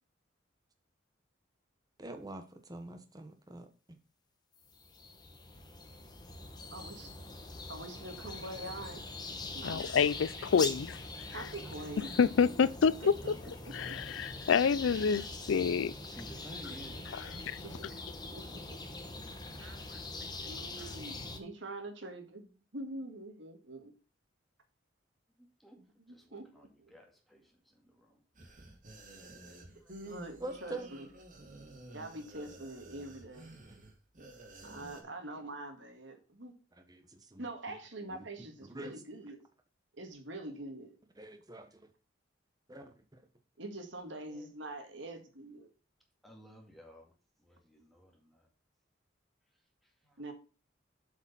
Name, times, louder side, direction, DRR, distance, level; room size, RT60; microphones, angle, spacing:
voice 1, 2.0-3.7 30.4-30.9 33.7-33.8 34.6-34.9 36.9-37.5 38.1-38.3 38.6-38.9 41.2-41.7 42.7-43.2, right 2 dB, 20° right, 1.1 m, -45 dB
sound 1, 4.7-21.4, left 2 dB, 20° left, 1.2 m, -43 dB
voice 2, 6.7-7.1 7.7-9.0 9.5-10.5 11.3-12.1 12.8-12.9 13.2-13.3 13.6-14.5 14.9-15.0 17.3-17.9 18.3-18.8 19.6-20.0 20.4-23.9 26.1-26.5 26.8-26.9 29.7-29.8 30.0-31.1 31.9-33.4 34.6-36.5 37.4-39.4 40.0-41.0 43.6-45.7 50.2-50.3, right 2 dB, 70° right, 1.9 m, -45 dB
voice 3, 9.6-11.0 12.2-13.3 13.7-15.9 17.5-17.6, left 6 dB, 85° left, 0.4 m, -28 dB
voice 4, 11.6-12.4 16.1-17.2 18.0-18.6 25.4-25.8 26.1-28.2 29.8-30.0 30.2-30.4 44.3-44.5 46.2-47.1 47.4-48.5 49.8-50.3, equal, ahead, 2.1 m, -56 dB
sound 2, 28.3-35.0, right 1 dB, 45° right, 2.2 m, -51 dB
7.6 x 5.1 x 5.7 m
head